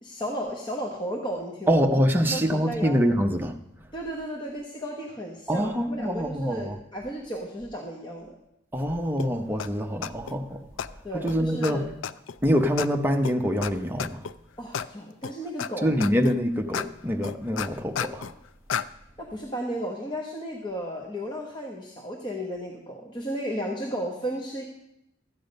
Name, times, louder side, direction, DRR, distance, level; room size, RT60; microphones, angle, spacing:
voice 1, 0.0-1.9 2.3-3.1 3.9-8.3 11.0-11.9 14.6-15.9 19.2-24.6, equal, 25° left, 1.1 m, -34 dB
voice 2, 1.7-3.6 5.5-6.8 8.7-10.6 11.1-11.9 12.4-14.3 15.8-18.4, equal, 10° right, 0.8 m, -25 dB
sound 1, 9.2-9.3 9.6-9.7 10.0-10.3 10.8-10.9 11.3-11.4 11.6-11.7 12.0-12.4 12.8-12.9 13.2-13.3 13.6-13.7 14.0-14.3 14.7-14.9 15.2-15.7 16.0-16.4 16.7-16.9 17.2-18.3 18.7-18.8, left 7 dB, 75° left, 0.4 m, -31 dB
13.0 x 8.6 x 5.3 m
head